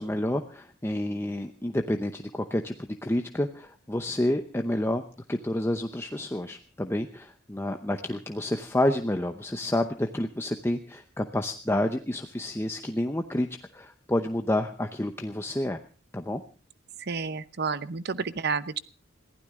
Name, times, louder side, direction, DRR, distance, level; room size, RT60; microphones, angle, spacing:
voice 1, 0.0-5.0 5.3-13.5 13.7-15.8 16.1-16.4, left 1 dB, 15° left, 6 dB, 0.8 m, -29 dB
voice 2, 17.0-18.8, right 5 dB, 55° right, 15 dB, 0.8 m, -30 dB
21.5 x 15.5 x 3.7 m, 0.38 s
head